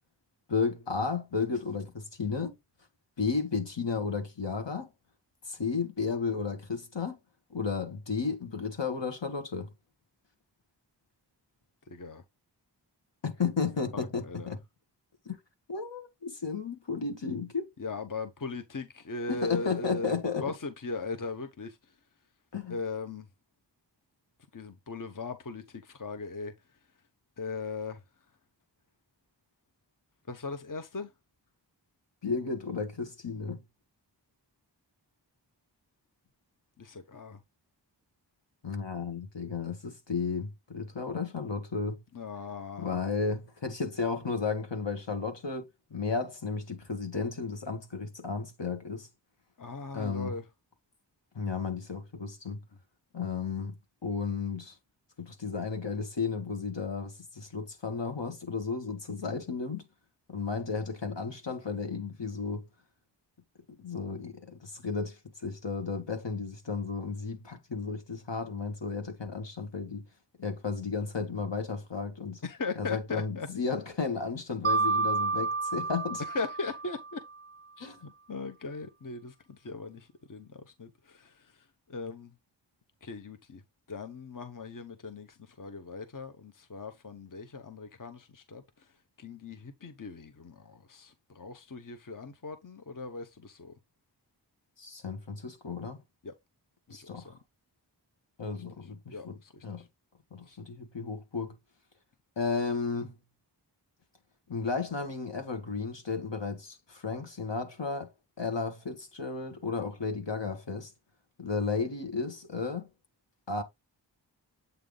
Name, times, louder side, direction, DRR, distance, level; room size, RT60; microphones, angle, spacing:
voice 1, 0.5-2.5 3.2-4.9 5.5-7.2 7.5-9.7 13.2-14.6 15.3-15.4 15.7-17.7 19.3-20.5 22.5-22.8 32.2-33.6 38.6-42.0 42.8-49.1 49.9-50.3 51.4-52.6 53.1-53.7 54.0-54.8 55.2-59.8 60.3-62.7 63.8-70.0 70.4-72.4 72.8-76.2 77.8-78.0 94.8-96.0 96.9-97.3 98.4-99.8 100.3-101.5 102.4-103.1 104.5-108.1 108.4-110.9 111.4-112.9 113.5-113.6, left 5 dB, 75° left, 1.9 m, -33 dB
voice 2, 11.9-12.2 13.9-14.6 17.8-22.0 22.7-23.3 24.5-26.5 27.4-28.0 30.3-31.1 36.8-37.4 42.1-43.0 49.6-50.4 72.4-73.5 76.2-77.2 77.8-82.3 83.0-83.6 83.9-93.7 96.2-96.3 96.9-97.4 98.8-99.9 100.5-100.6, left 4 dB, 45° left, 1.0 m, -39 dB
Mallet percussion, 74.6-77.4, right 4 dB, 25° right, 0.6 m, -30 dB
8.1 x 3.3 x 3.9 m
wide cardioid pair, 50°, 43 cm